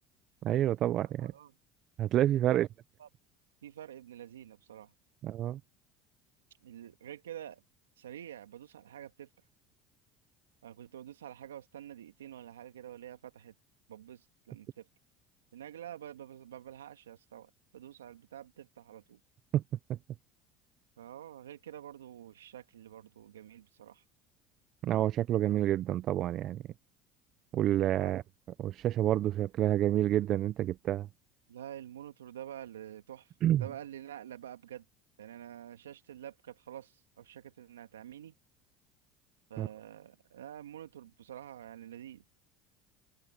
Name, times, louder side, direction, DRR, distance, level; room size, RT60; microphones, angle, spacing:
voice 1, 0.4-1.3 2.0-2.7 5.2-5.6 19.5-19.6 24.8-26.6 27.5-28.2 28.6-31.1 33.4-33.6 39.6-39.7, right 12 dB, 55° right, 1.0 m, -28 dB
voice 2, 1.2-1.5 2.4-2.7 3.0-3.1 3.6-4.9 6.6-7.6 8.0-9.3 10.6-13.5 13.9-14.9 15.5-19.2 21.0-24.0 28.0-28.1 31.5-34.8 35.2-38.3 39.5-42.2, right 11 dB, 90° right, 2.5 m, -47 dB
open air
hypercardioid pair, 75°, 0 cm